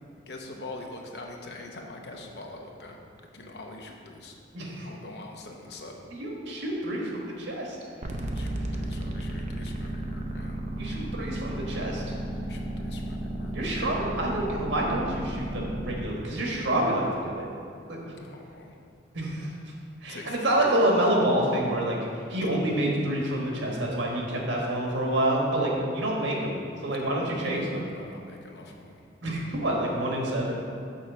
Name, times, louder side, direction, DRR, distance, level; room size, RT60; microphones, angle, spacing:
voice 1, 0.3-3.0 3.3-4.4 4.8-6.0 8.2-10.6 12.5-13.6 18.2-18.8 20.1-20.7 22.4-22.8 27.0-29.0, left 2 dB, 60° left, 2 dB, 0.8 m, -43 dB
voice 2, 4.5-4.9 6.1-7.8 10.8-12.2 13.5-17.5 17.9-18.0 19.1-19.5 20.0-22.0 22.3-26.5 26.8-27.8 29.2-30.7, right 1 dB, 85° right, -2 dB, 1.4 m, -27 dB
sound 1, 8.0-16.0, right 1 dB, 40° right, 0.5 m, -33 dB
6.2 x 4.1 x 6.2 m, 2.5 s
head